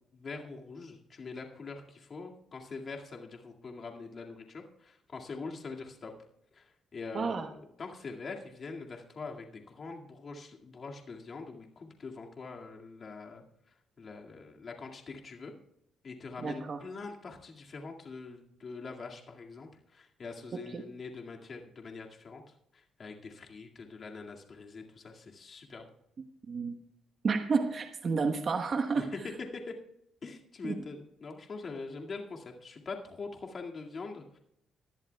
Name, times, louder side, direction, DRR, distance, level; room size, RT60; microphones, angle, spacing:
voice 1, 0.1-6.1 6.5-15.5 16.0-22.4 22.7-25.9 28.9-29.2 29.5-29.7 30.2-34.4, left 4 dB, 45° left, 1 dB, 2.1 m, -44 dB
voice 2, 7.1-7.5 16.4-16.8 20.5-20.8 26.5-26.8 27.2-29.1 30.6-30.8, right 4 dB, 45° right, 5 dB, 1.1 m, -31 dB
20.0 x 11.5 x 2.3 m, 0.75 s
cardioid pair, 100°, 0 cm